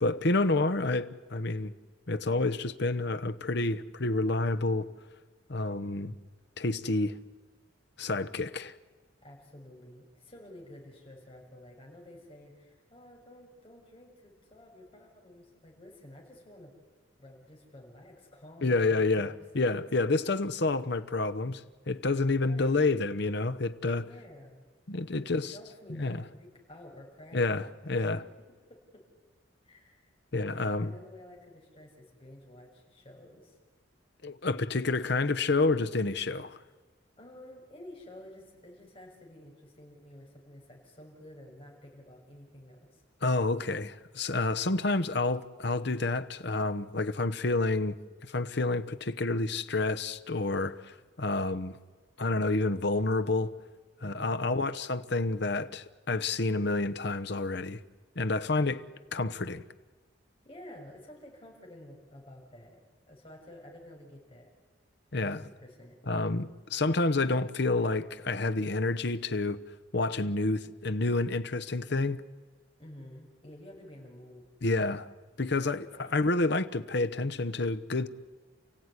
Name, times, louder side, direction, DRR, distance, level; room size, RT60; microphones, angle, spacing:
voice 1, 0.0-1.7 2.1-4.9 5.5-6.1 6.6-7.1 8.0-8.7 18.6-24.1 24.9-25.5 25.9-26.2 27.3-28.2 30.3-30.9 34.2-36.6 43.2-47.9 48.3-51.8 52.2-53.5 54.0-57.8 58.2-58.8 59.1-59.6 65.1-65.4 66.1-69.6 69.9-72.2 74.6-75.1 75.4-78.1, left 2 dB, 65° left, 1.0 m, -29 dB
voice 2, 9.2-16.7 17.2-19.4 22.4-22.8 24.0-24.6 25.3-28.2 28.7-29.0 29.6-33.6 37.2-43.0 54.0-54.6 60.4-62.8 63.1-64.5 65.2-66.0 72.8-74.4 75.8-76.2, left 1 dB, 30° left, 6.5 m, -51 dB
29.5 x 16.0 x 9.8 m
head